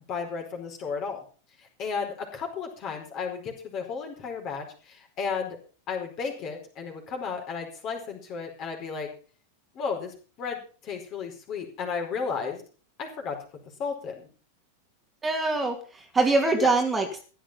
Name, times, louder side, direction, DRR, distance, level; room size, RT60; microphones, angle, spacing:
voice 1, 0.1-1.2 1.8-5.6 5.9-9.1 9.7-12.6 13.0-13.4 13.8-14.3 16.6-16.7, left 5 dB, 35° left, 2 dB, 4.6 m, -33 dB
voice 2, 15.2-17.2, right 3 dB, 15° right, 3 dB, 2.5 m, -24 dB
15.0 x 10.0 x 5.7 m, 0.39 s
figure-of-eight pair, 90°, 0 cm